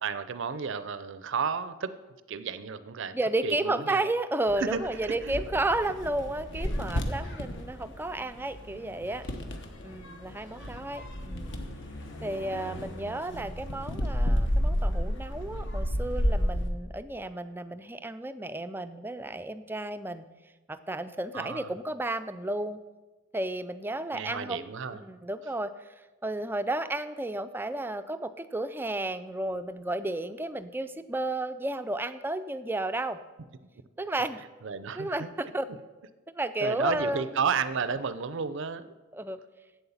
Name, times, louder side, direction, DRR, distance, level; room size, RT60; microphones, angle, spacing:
voice 1, 0.0-2.0 2.3-3.2 3.4-4.0 4.6-5.4 10.6-10.8 21.3-21.7 24.1-25.0 34.6-35.3 36.6-38.9, right 6 dB, 60° right, 13 dB, 0.5 m, -32 dB
voice 2, 3.1-9.3 9.8-11.6 12.2-20.2 20.7-22.8 23.3-25.9 26.2-33.2 34.0-34.4 35.0-35.7 36.3-37.3 39.1-39.4, right 2 dB, 10° right, 11 dB, 0.4 m, -32 dB
sound 1, 4.5-16.7, equal, 60° left, 1.1 m, -32 dB
8.2 x 8.0 x 7.1 m, 1.2 s
head